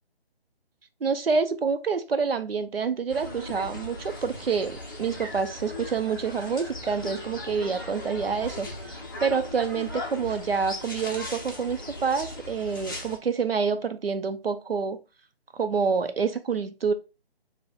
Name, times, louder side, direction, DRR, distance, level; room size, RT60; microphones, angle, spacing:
voice 1, 1.0-15.0 15.5-16.9, right 5 dB, 65° right, 0.7 m, -27 dB
sound 1, 3.1-13.2, left 1 dB, 20° left, 0.5 m, -38 dB
5.0 x 2.2 x 3.7 m
figure-of-eight pair, 155°, 32 cm